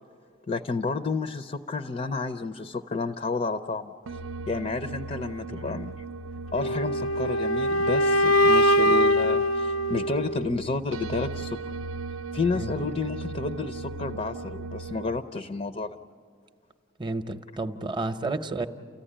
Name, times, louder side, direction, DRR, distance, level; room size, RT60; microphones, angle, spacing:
voice 1, 0.5-3.9 4.5-5.9 6.5-11.6 12.3-16.0, left 3 dB, 35° left, 9 dB, 0.5 m, -30 dB
sound 1, 4.1-15.2, right 3 dB, 80° right, 0.5 m, -38 dB
sound 2, 6.6-10.6, equal, 85° left, 0.6 m, -22 dB
voice 2, 17.0-18.7, right 2 dB, 20° right, 9 dB, 0.7 m, -31 dB
30.0 x 14.5 x 10.0 m, 2.1 s
head